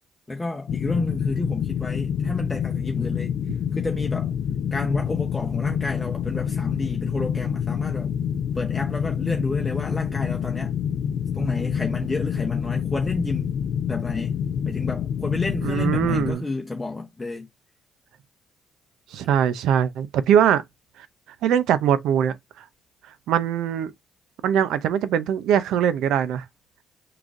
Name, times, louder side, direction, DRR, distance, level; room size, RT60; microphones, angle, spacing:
voice 1, 0.3-3.3 3.7-4.3 4.7-8.1 8.5-10.7 11.3-13.5 13.9-17.5, left 2 dB, 15° left, 0.8 m, -30 dB
sound 1, 0.7-16.3, left 8 dB, 65° left, 0.3 m, -27 dB
voice 2, 15.6-16.4 19.1-20.6 21.4-22.6 23.3-23.9 24.4-26.4, right 9 dB, 85° right, 0.5 m, -21 dB
4.7 x 3.7 x 2.6 m
cardioid pair, 90°, 0 cm